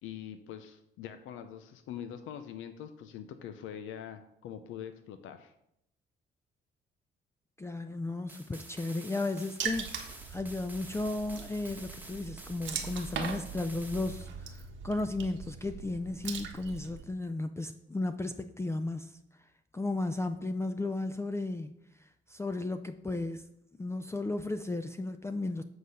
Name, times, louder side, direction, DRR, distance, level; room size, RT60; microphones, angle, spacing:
voice 1, 0.0-5.5, left 9 dB, 90° left, 9 dB, 0.6 m, -43 dB
voice 2, 7.6-19.2 19.7-21.7 22.0-23.5 23.8-25.6, left 2 dB, 15° left, 8 dB, 0.4 m, -34 dB
sound 1, 8.3-14.3, right 2 dB, 10° right, 1.1 m, -50 dB
Water / Splash splatter, 9.6-17.0, right 6 dB, 70° right, 1.2 m, -41 dB
7.8 x 4.0 x 6.4 m, 0.77 s
cardioid pair, 90°, 20 cm